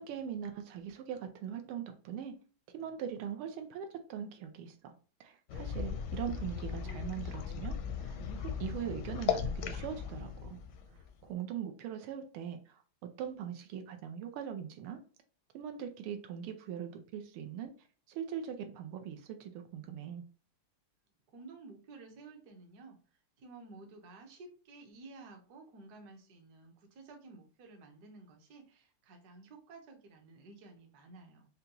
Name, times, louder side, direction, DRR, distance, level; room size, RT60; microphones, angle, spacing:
voice 1, 0.0-2.4 2.7-4.9 5.2-10.6 10.9-15.0 15.5-17.7 18.1-20.2, right 8 dB, 85° right, 7 dB, 1.5 m, -41 dB
sound 1, 5.5-11.3, left 7 dB, 75° left, 1.0 m, -37 dB
voice 2, 21.3-23.0 23.4-31.5, right 3 dB, 55° right, 2 dB, 1.2 m, -53 dB
5.2 x 2.3 x 2.8 m, 0.39 s
omnidirectional pair, 2.4 m